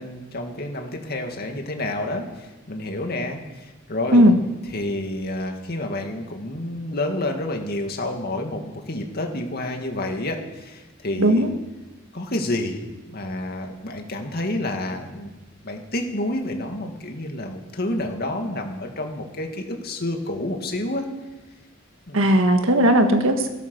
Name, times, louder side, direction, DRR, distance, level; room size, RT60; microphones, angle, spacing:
voice 1, 0.0-4.3 4.7-11.5 12.1-15.3 15.6-21.1 22.1-22.4, left 1 dB, 50° left, 3 dB, 2.2 m, -29 dB
voice 2, 11.2-11.5 22.1-23.5, equal, 80° right, 6 dB, 1.7 m, -16 dB
16.0 x 12.5 x 6.4 m, 1.1 s
head